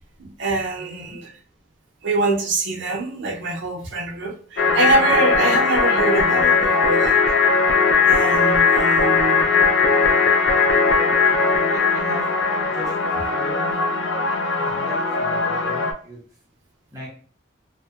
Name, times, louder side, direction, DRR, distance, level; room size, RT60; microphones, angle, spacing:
voice 1, 0.2-1.3 2.0-7.2 8.0-9.5, right 2 dB, 80° right, 2 dB, 0.6 m, -24 dB
voice 2, 0.8-1.1 11.7-12.3 12.7-13.0 13.3-13.8 14.5-16.2 16.9-17.1, equal, 20° right, -5 dB, 0.6 m, -37 dB
sound 1, 4.6-15.9, left 4 dB, 65° left, 0.3 m, -19 dB
2.7 x 2.1 x 2.2 m, 0.44 s
head